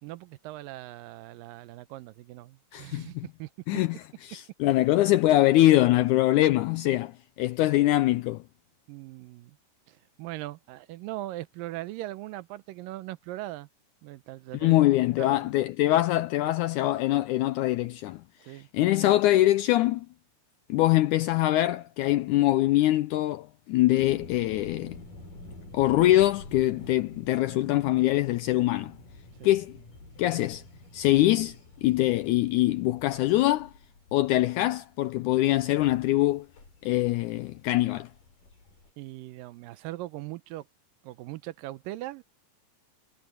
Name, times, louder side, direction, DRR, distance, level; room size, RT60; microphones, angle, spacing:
voice 1, 0.0-3.5 8.9-9.6 9.9-13.7 14.0-14.8 15.2-15.5 18.4-18.7 29.4-29.5 39.0-40.7 41.0-42.2, right 16 dB, 80° right, 2.4 m, -40 dB
voice 2, 2.7-3.3 3.7-4.0 4.2-7.1 7.4-8.4 14.5-18.2 18.7-20.1 20.7-25.0 25.7-28.9 29.4-29.8 30.2-30.6 30.9-31.6 31.8-33.7 34.1-36.5 36.8-38.1, left 15 dB, 85° left, 1.8 m, -23 dB
sound 1, 24.0-38.9, left 2 dB, 65° left, 9.4 m, -49 dB
omnidirectional pair, 4.0 m